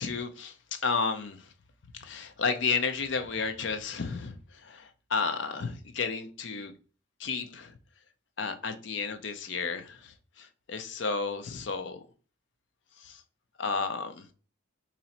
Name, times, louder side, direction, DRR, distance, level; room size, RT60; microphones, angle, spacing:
voice 1, 0.0-1.5 1.9-6.7 7.2-7.7 8.4-12.0 13.0-13.2 13.6-14.2, left 5 dB, 60° left, 0.5 m, -32 dB
3.0 x 2.7 x 4.2 m
head